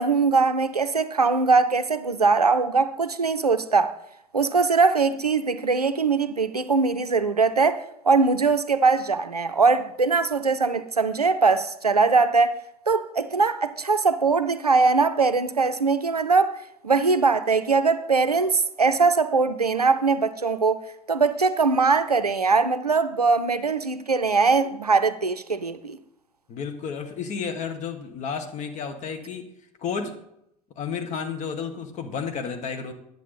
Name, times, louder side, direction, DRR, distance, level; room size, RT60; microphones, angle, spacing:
voice 1, 0.0-3.9 4.3-12.5 12.9-16.6 16.8-20.8 21.1-26.0, right 4 dB, 90° right, 0.5 m, -21 dB
voice 2, 26.5-29.5 29.8-30.2 30.8-32.9, left 6 dB, 40° left, 1.3 m, -31 dB
9.9 x 7.0 x 4.1 m
figure-of-eight pair, 70°, 19 cm